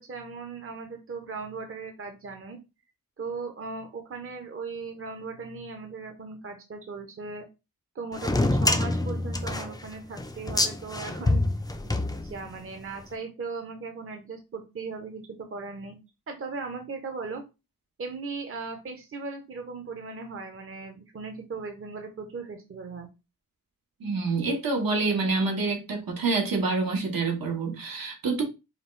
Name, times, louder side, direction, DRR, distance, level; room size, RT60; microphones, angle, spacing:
voice 1, 0.0-2.6 3.2-7.5 7.9-11.4 11.8-16.0 16.3-17.4 18.0-23.1, right 4 dB, 40° right, 0.7 m, -38 dB
sound 1, 8.2-12.7, left 2 dB, 10° left, 0.4 m, -26 dB
voice 2, 24.0-28.4, right 3 dB, 80° right, 1.3 m, -27 dB
5.0 x 2.3 x 3.1 m
wide cardioid pair, 140°, 34 cm